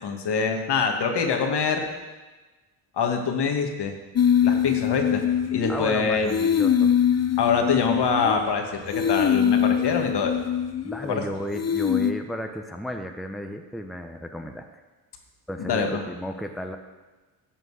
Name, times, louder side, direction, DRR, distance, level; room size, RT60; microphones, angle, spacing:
voice 1, 0.0-1.9 3.0-4.0 4.4-5.2 5.5-6.3 7.4-10.4 11.1-11.2 15.6-16.0, left 5 dB, 55° left, 3 dB, 2.0 m, -24 dB
sound 1, 4.2-6.0 6.3-8.5 8.9-11.1 11.5-12.1, left 8 dB, 30° left, 0.8 m, -23 dB
voice 2, 5.7-6.9 10.8-14.7 15.5-16.8, equal, ahead, 5 dB, 1.0 m, -34 dB
13.5 x 7.6 x 5.0 m, 1.2 s
hypercardioid pair, 50°, 50 cm